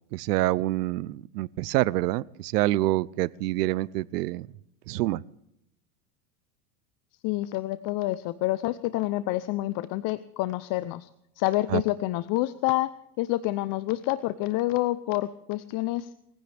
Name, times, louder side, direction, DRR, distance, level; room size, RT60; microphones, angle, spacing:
voice 1, 0.1-4.5 4.9-5.2 11.7-11.8, right 17 dB, 75° right, 0.8 m, -26 dB
voice 2, 7.2-11.1 11.4-12.9 13.2-16.1, left 17 dB, 45° left, 0.8 m, -28 dB
21.0 x 15.5 x 3.5 m
supercardioid pair, 115°, 47 cm